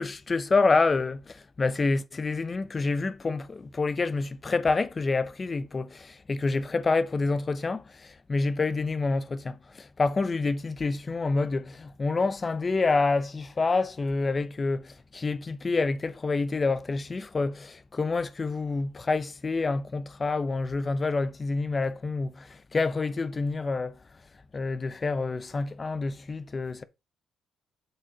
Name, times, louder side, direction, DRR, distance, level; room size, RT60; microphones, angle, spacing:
voice 1, 0.0-7.8 8.3-23.9 24.5-26.8, left 3 dB, 30° left, 0.8 m, -27 dB
7.6 x 5.1 x 4.9 m
cardioid pair, 90°, 0 cm